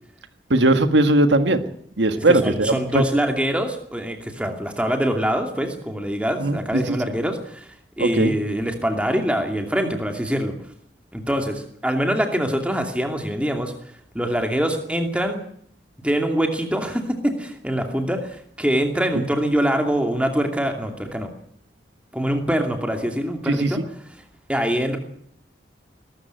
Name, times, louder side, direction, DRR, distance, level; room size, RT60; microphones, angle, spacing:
voice 1, 0.5-1.6 2.0-3.0 6.4-6.6 6.9-7.0 8.0-8.3 23.5-23.8, right 2 dB, 80° right, 9 dB, 1.6 m, -19 dB
voice 2, 2.2-7.7 8.0-10.5 11.1-13.7 14.1-15.4 16.0-21.3 22.1-23.8 24.5-25.0, equal, 5° right, 4 dB, 2.6 m, -24 dB
21.0 x 13.5 x 9.2 m, 0.68 s
head